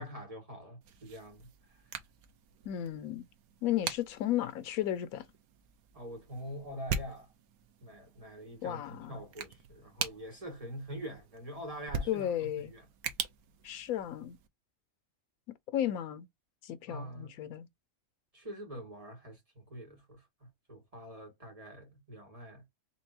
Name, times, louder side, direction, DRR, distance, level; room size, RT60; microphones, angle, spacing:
voice 1, 0.0-1.9 5.9-7.3 7.8-12.8 16.9-17.3 18.3-20.3 20.7-22.6, equal, 25° right, 2.1 m, -45 dB
sound 1, 0.8-14.5, right 6 dB, 85° right, 1.2 m, -43 dB
voice 2, 2.6-3.2 3.6-5.2 8.6-9.2 12.1-12.7 13.6-14.4 15.5-16.3 16.6-17.7, left 11 dB, 85° left, 1.1 m, -34 dB
4.5 x 3.4 x 2.7 m
omnidirectional pair, 1.5 m